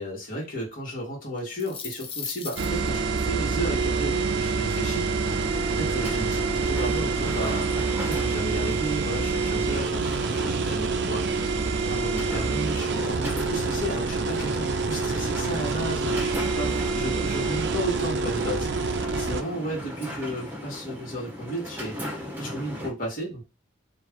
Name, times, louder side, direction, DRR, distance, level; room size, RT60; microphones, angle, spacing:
voice 1, 0.0-5.4 5.8-7.7 8.0-11.6 11.9-23.4, right 1 dB, 40° left, -4 dB, 1.6 m, -34 dB
sound 1, 1.4-3.0, left 6 dB, 25° left, 0.6 m, -36 dB
sound 2, 2.6-19.4, right 4 dB, 55° right, 0.4 m, -27 dB
sound 3, 5.2-22.9, equal, 10° right, 1.0 m, -37 dB
4.5 x 2.5 x 3.6 m, 0.29 s
head